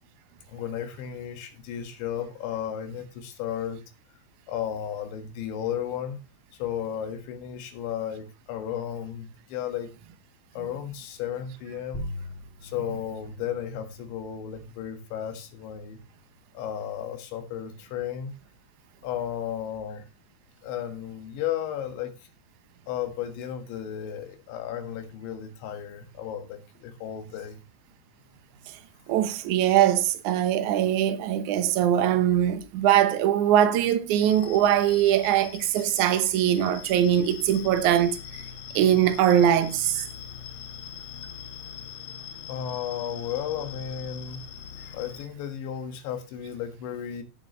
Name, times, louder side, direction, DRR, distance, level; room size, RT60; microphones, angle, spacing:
voice 1, 0.5-3.8 4.5-6.2 6.6-9.9 10.6-12.1 12.6-16.0 16.6-18.3 19.0-20.1 20.6-22.1 22.9-27.6 42.5-44.4 44.8-47.2, left 9 dB, 90° left, 4.0 m, -34 dB
sound 1, 11.9-17.0, left 1 dB, 25° left, 1.9 m, -43 dB
voice 2, 29.1-38.2 38.8-40.1, right 10 dB, 80° right, 1.7 m, -22 dB
sound 2, 34.2-45.3, left 8 dB, 75° left, 3.2 m, -42 dB
18.0 x 6.7 x 3.1 m
omnidirectional pair, 5.1 m